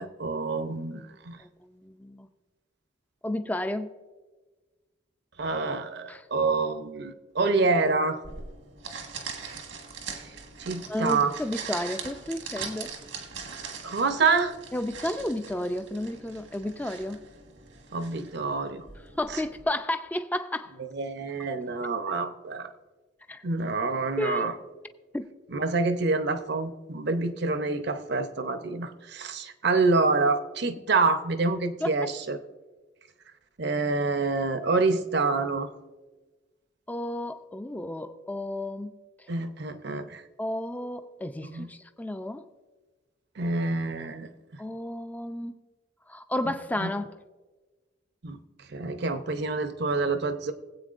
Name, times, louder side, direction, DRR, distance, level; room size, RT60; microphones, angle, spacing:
voice 1, 0.0-1.4 5.4-8.2 10.6-11.4 13.8-14.6 17.9-18.9 19.3-19.4 20.8-22.7 23.4-24.5 25.5-32.4 33.6-35.7 39.3-40.2 41.5-41.7 43.4-44.3 46.4-46.5 46.8-46.9 48.2-48.4 48.7-50.5, right 3 dB, 60° right, 0.7 m, -27 dB
voice 2, 1.4-2.3 3.2-3.9 6.1-6.2 10.9-12.9 14.7-17.2 19.2-20.7 23.3-23.4 24.2-24.5 25.1-25.3 31.8-32.0 36.9-38.9 39.2-39.3 40.4-42.4 44.6-45.6 46.1-47.0, left 1 dB, 10° left, 0.4 m, -32 dB
sound 1, 8.2-19.6, right 5 dB, 85° right, 1.5 m, -41 dB
20.5 x 8.1 x 2.5 m
head